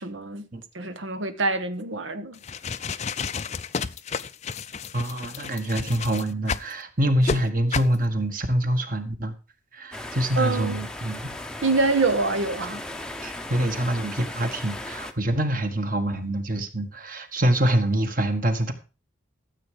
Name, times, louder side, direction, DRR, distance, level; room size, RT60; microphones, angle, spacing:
voice 1, 0.0-0.5 0.7-2.4 10.4-10.8 11.6-12.8, right 3 dB, 75° right, 1.1 m, -25 dB
sound 1, 2.3-6.7 7.2-7.4 7.7-8.0, left 5 dB, 35° left, 0.5 m, -31 dB
voice 2, 4.9-9.3 9.7-11.3 13.2-18.7, right 1 dB, 45° right, 1.7 m, -25 dB
sound 2, 9.9-15.1, left 1 dB, 5° left, 0.7 m, -37 dB
13.5 x 7.7 x 5.1 m
head